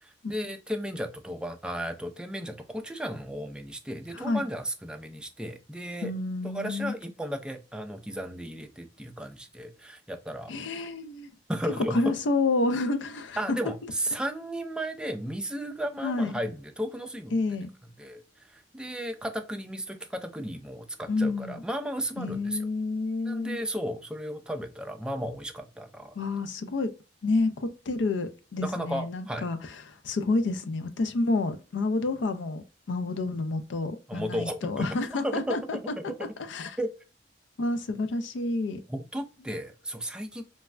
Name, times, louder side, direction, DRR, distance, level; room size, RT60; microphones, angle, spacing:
voice 1, 0.0-6.1 6.4-10.5 11.5-12.1 13.4-17.3 18.0-22.6 23.2-26.2 28.6-29.5 34.1-35.6 36.0-36.3 36.8-36.9 38.9-40.4, equal, 5° right, 0.3 m, -34 dB
voice 2, 6.0-7.0 10.5-11.3 11.9-13.6 16.0-16.3 17.3-17.7 21.1-21.6 22.2-23.6 26.2-26.9 27.2-36.8 37.6-38.8, left 3 dB, 75° left, 0.4 m, -29 dB
3.2 x 2.1 x 2.3 m
head